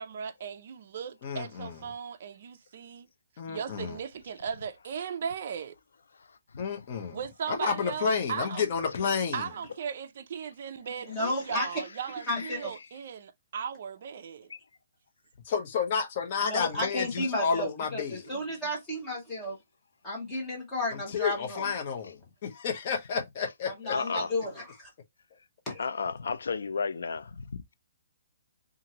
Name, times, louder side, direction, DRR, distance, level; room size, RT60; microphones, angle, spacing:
voice 1, 0.0-3.1 3.5-5.8 7.1-8.7 9.3-14.5, right 7 dB, 40° right, 0.3 m, -37 dB
voice 2, 1.2-1.8 3.4-4.0 6.6-7.2 7.5-9.5 15.5-18.2 20.9-23.9, left 6 dB, 30° left, 0.6 m, -31 dB
voice 3, 11.1-11.7 12.3-12.7 16.4-19.6 20.0-21.6 23.7-24.9 25.7-25.8, left 1 dB, 10° left, 1.1 m, -32 dB
voice 4, 23.9-24.3 25.8-27.6, left 5 dB, 80° left, 0.4 m, -33 dB
2.8 x 2.5 x 2.8 m
hypercardioid pair, 175°, 0 cm